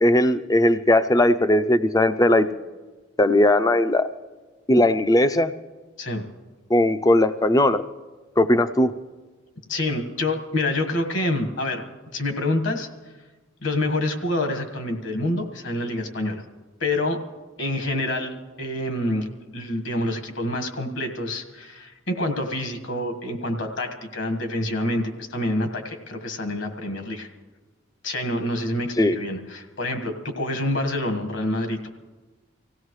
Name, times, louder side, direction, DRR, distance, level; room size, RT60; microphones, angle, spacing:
voice 1, 0.0-2.5 3.2-4.1 4.7-5.5 6.7-7.8 8.4-8.9 29.0-29.2, left 1 dB, 20° left, 12 dB, 0.5 m, -18 dB
voice 2, 9.7-11.8 12.1-12.9 13.6-16.4 16.8-17.2 17.6-19.2 19.5-27.3 28.0-31.9, left 1 dB, 65° left, 4 dB, 1.6 m, -27 dB
25.0 x 16.5 x 3.2 m, 1.3 s
head